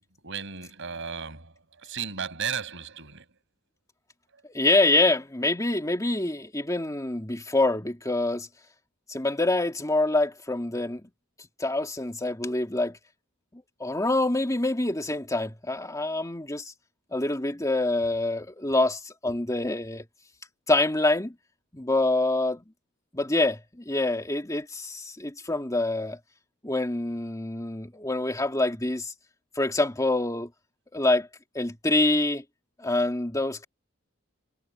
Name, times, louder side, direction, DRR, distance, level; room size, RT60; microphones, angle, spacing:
voice 1, 0.2-3.3, right 6 dB, 60° right, 6.2 m, -35 dB
voice 2, 4.5-8.5 9.1-11.0 11.6-13.0 13.5-16.6 17.1-20.0 20.7-21.3 21.7-22.6 23.1-26.2 26.6-29.1 29.6-30.5 30.9-31.3 31.5-32.4 32.8-33.6, left 2 dB, 15° left, 2.6 m, -26 dB
head